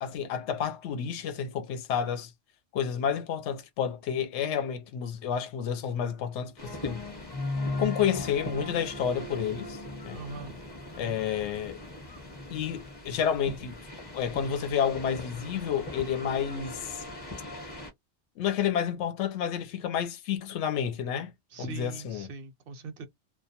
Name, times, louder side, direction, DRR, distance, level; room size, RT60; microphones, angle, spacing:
voice 1, 0.0-2.3 2.7-7.0 7.8-9.8 10.1-10.2 10.9-11.8 12.5-13.8 14.1-17.0 18.4-21.3 21.6-22.3, left 8 dB, 80° left, 0.9 m, -30 dB
sound 1, 6.6-17.9, left 2 dB, 25° left, 0.8 m, -38 dB
voice 2, 10.1-10.5 21.5-23.1, right 4 dB, 65° right, 0.7 m, -41 dB
2.2 x 2.2 x 2.7 m
omnidirectional pair, 1.2 m